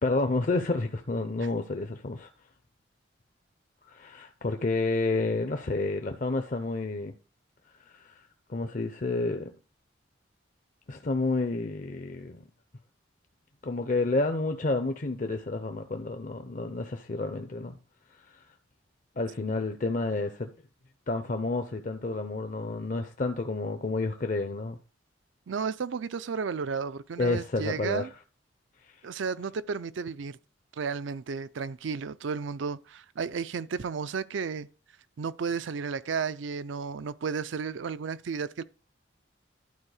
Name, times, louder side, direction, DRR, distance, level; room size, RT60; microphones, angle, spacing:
voice 1, 0.0-2.3 3.9-7.1 7.9-9.5 10.9-12.4 13.6-17.8 18.3-18.4 19.2-20.5 21.1-24.8 27.2-28.1, left 3 dB, 40° left, 0.6 m, -30 dB
voice 2, 25.5-28.1 29.0-30.4 30.8-34.7 35.2-38.6, right 5 dB, 75° right, 0.4 m, -33 dB
11.5 x 4.4 x 4.8 m
head